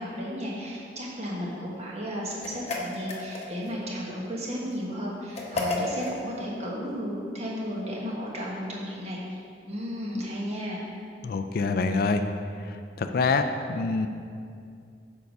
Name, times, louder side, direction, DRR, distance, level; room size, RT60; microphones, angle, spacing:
voice 1, 0.0-9.2 9.6-10.8, equal, 35° right, -4 dB, 1.3 m, -34 dB
sound 1, 2.4-3.7 5.3-6.2, left 2 dB, 35° left, 0.9 m, -31 dB
voice 2, 11.2-12.2 13.0-14.1, left 4 dB, 55° left, 7 dB, 0.3 m, -25 dB
7.0 x 4.8 x 5.3 m, 2.4 s
head